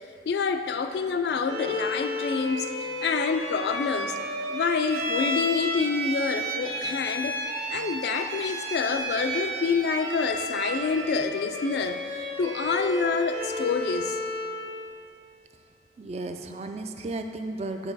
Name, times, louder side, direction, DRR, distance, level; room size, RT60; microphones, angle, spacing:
voice 1, 0.3-4.2 4.5-7.4 7.7-14.2, left 5 dB, 70° left, 8 dB, 0.3 m, -27 dB
Bowed string instrument, 1.4-14.6, equal, 70° right, 1.5 m, -32 dB
voice 2, 16.0-17.9, right 2 dB, 35° right, 6 dB, 0.3 m, -34 dB
10.0 x 3.9 x 4.0 m, 2.6 s
head